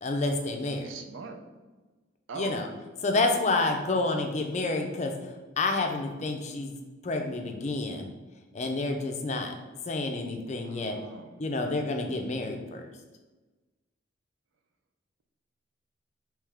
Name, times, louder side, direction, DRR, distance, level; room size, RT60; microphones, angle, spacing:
voice 1, 0.0-0.9 2.3-2.7 3.0-6.7 7.0-8.1 8.5-9.5 9.9-11.0 11.4-12.8, left 2 dB, 35° left, 3 dB, 0.4 m, -29 dB
voice 2, 0.8-1.4 2.3-2.6 10.6-11.4, right 4 dB, 80° right, 5 dB, 0.5 m, -41 dB
3.5 x 3.1 x 3.4 m, 1.2 s
head